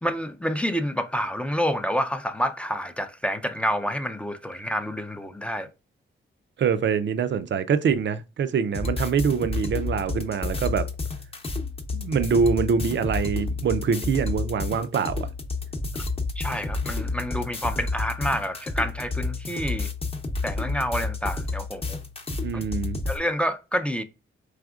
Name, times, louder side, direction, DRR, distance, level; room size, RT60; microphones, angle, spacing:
voice 1, 0.0-5.7 15.9-16.0 16.4-19.9 20.4-22.0 23.1-24.0, equal, 5° left, 0.4 m, -28 dB
voice 2, 6.6-10.9 11.9-15.3 22.4-23.0, right 6 dB, 60° right, 0.5 m, -24 dB
sound 1, 8.7-23.2, left 3 dB, 30° left, 0.7 m, -30 dB
4.9 x 3.5 x 2.3 m
wide cardioid pair, 120°, 21 cm